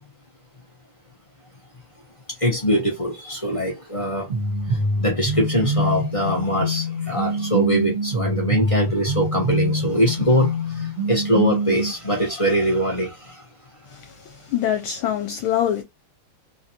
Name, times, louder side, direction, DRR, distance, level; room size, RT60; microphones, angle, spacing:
voice 1, 2.4-4.3 4.7-13.4, equal, 25° left, 0.7 m, -23 dB
sound 1, 4.3-11.9, right 1 dB, 75° right, 0.5 m, -25 dB
voice 2, 14.5-15.8, left 10 dB, 75° left, 1.4 m, -23 dB
3.7 x 2.4 x 2.8 m
omnidirectional pair, 2.4 m